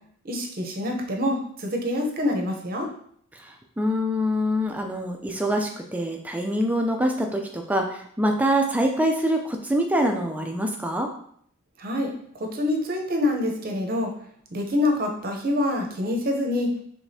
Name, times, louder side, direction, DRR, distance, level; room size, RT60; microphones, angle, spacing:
voice 1, 0.2-2.9 11.8-12.1 12.4-14.1 14.5-16.7, left 1 dB, 40° right, 2 dB, 0.7 m, -26 dB
voice 2, 3.3-11.1, equal, 5° right, 3 dB, 0.4 m, -25 dB
4.9 x 3.5 x 2.7 m, 0.65 s
head